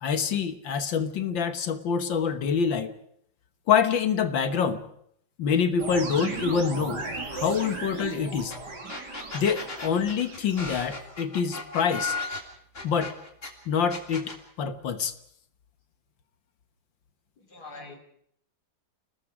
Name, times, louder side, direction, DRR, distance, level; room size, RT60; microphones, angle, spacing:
voice 1, 0.0-2.9 3.7-4.8 5.4-8.5 9.3-12.2 12.8-13.1 13.7-15.1, left 6 dB, 75° left, 10 dB, 2.0 m, -26 dB
sound 1, 5.8-11.2, right 3 dB, 60° right, 3.6 m, -37 dB
sound 2, 8.5-8.6 8.9-13.5 13.9-14.4, left 3 dB, 40° left, 3.6 m, -35 dB
voice 2, 17.4-18.0, left 3 dB, 55° left, 5 dB, 3.7 m, -44 dB
30.0 x 19.0 x 4.9 m, 0.69 s
omnidirectional pair, 2.1 m